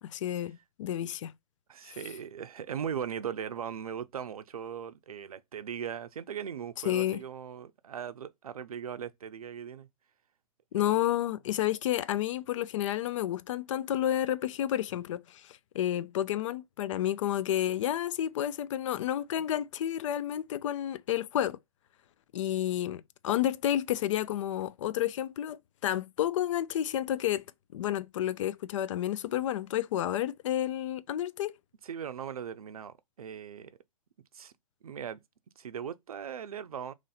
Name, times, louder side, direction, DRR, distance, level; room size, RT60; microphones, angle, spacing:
voice 1, 0.0-1.3 6.8-7.2 10.7-21.6 22.3-27.4 27.7-31.5, left 12 dB, 60° left, 0.4 m, -30 dB
voice 2, 1.7-9.9 10.7-11.0 31.8-33.8 34.3-34.5 34.8-35.2 35.6-36.9, right 8 dB, 90° right, 0.5 m, -39 dB
3.1 x 2.6 x 3.9 m
hypercardioid pair, 125°, 18 cm